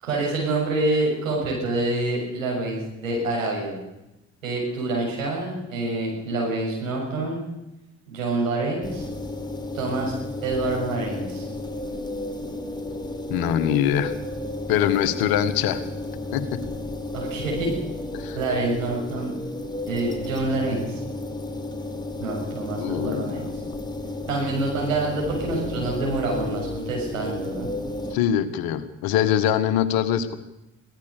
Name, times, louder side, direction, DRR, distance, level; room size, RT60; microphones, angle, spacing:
voice 1, 0.0-3.8 4.4-7.4 8.1-9.1 9.7-10.1 10.4-11.5 17.1-17.7 18.3-19.3 19.9-21.0 22.2-23.5 24.3-27.7, right 2 dB, 85° right, -2 dB, 6.8 m, -27 dB
sound 1, 8.8-28.2, left 2 dB, 10° left, 4.5 m, -33 dB
voice 2, 13.3-14.1 14.7-15.8 16.3-16.6 18.1-18.4 22.8-23.4 28.1-30.3, left 10 dB, 65° left, 12 dB, 1.8 m, -23 dB
24.0 x 17.0 x 6.8 m, 0.94 s
figure-of-eight pair, 45°, 39 cm